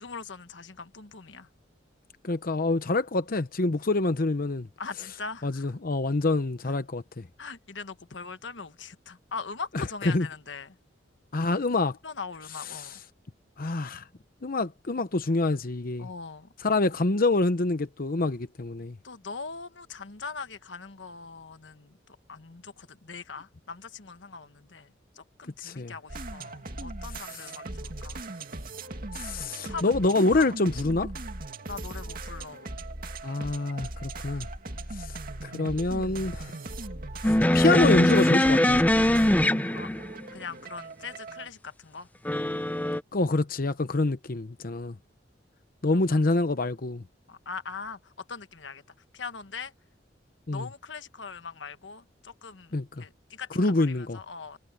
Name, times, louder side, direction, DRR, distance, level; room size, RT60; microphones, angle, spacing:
voice 1, 0.0-1.5 4.8-5.7 7.4-10.8 11.3-11.7 12.0-12.9 16.0-16.5 16.8-16.9 19.0-22.0 22.3-28.2 29.7-30.5 31.7-32.7 34.6-35.0 39.7-39.9 40.3-42.1 45.9-46.0 47.3-48.8 49.1-49.7 50.5-52.7 53.0-54.6, left 5 dB, 90° left, 1.3 m, -41 dB
voice 2, 2.2-4.7 5.4-7.3 9.7-10.3 11.3-12.0 12.7-13.0 13.6-14.0 14.4-16.1 16.6-19.0 25.6-25.9 27.3-27.5 29.1-31.1 33.2-34.5 34.9-35.1 35.4-36.5 37.3-38.8 43.1-45.0 45.8-47.0 50.5-50.7 52.7-53.0 53.5-54.2, left 2 dB, 50° left, 0.9 m, -26 dB
sound 1, 26.1-41.5, right 2 dB, 55° right, 2.3 m, -39 dB
sound 2, 37.2-40.2 42.2-43.0, left 1 dB, 10° left, 0.7 m, -22 dB
head